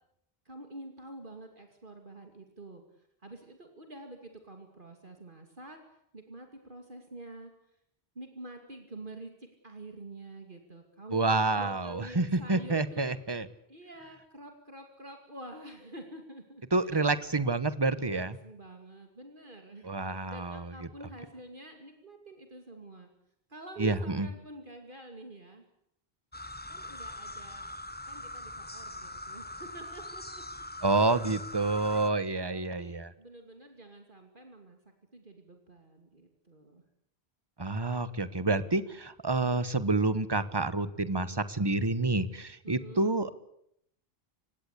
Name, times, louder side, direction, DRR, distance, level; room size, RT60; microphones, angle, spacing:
voice 1, 0.4-2.8 3.2-5.8 6.1-7.5 8.1-11.3 11.6-13.1 13.7-17.1 17.9-19.9 20.3-23.1 23.5-25.6 26.7-27.7 28.1-30.3 32.3-34.8 35.1-36.8 42.6-43.1, right 2 dB, 55° right, 4 dB, 2.8 m, -47 dB
voice 2, 11.1-13.5 16.7-18.4 19.8-20.7 23.8-24.3 30.8-33.1 37.6-43.3, right 3 dB, 25° right, 14 dB, 1.2 m, -28 dB
sound 1, 26.3-32.1, left 1 dB, 10° left, 1.0 m, -42 dB
29.0 x 17.0 x 8.4 m, 0.74 s
omnidirectional pair, 1.0 m